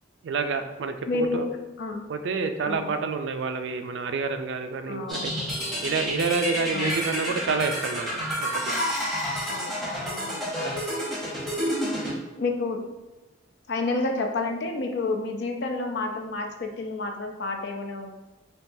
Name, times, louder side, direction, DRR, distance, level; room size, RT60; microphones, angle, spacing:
voice 1, 0.2-1.5 2.1-5.3 5.8-8.1 8.4-8.8, right 4 dB, 70° right, 7 dB, 0.4 m, -28 dB
voice 2, 1.1-2.0 2.7-3.0 4.9-5.5 6.7-7.0 9.5-10.5 11.8-11.9 12.4-12.8 13.7-18.1, left 3 dB, 60° left, 4 dB, 0.4 m, -30 dB
sound 1, 5.1-12.1, equal, ahead, 0.8 m, -29 dB
5.4 x 2.3 x 2.6 m, 1.1 s
head